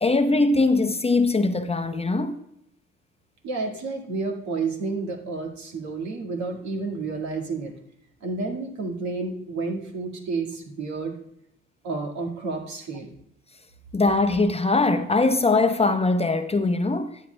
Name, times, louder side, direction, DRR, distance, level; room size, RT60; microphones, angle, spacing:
voice 1, 0.0-2.4 13.9-17.1, left 3 dB, 20° left, 0.7 m, -21 dB
voice 2, 3.4-7.7 8.2-11.2 11.8-13.1, right 3 dB, 70° right, 2.0 m, -30 dB
13.5 x 8.3 x 2.3 m
hypercardioid pair, 55°, 29 cm